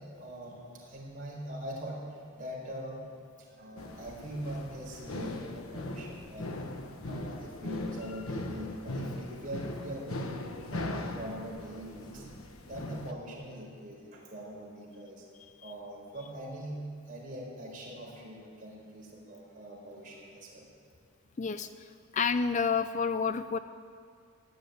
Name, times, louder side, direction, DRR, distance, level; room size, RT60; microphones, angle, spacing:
voice 1, 0.0-3.0 3.4-6.5 7.0-12.3 12.7-15.2 15.6-16.8 17.1-20.7, equal, 40° right, -3 dB, 4.4 m, -42 dB
sound 1, 3.8-13.1, left 1 dB, 85° left, 1.2 m, -39 dB
voice 2, 21.4-21.7 22.1-23.6, left 5 dB, 35° left, 11 dB, 0.4 m, -29 dB
15.0 x 9.7 x 9.3 m, 2.2 s
head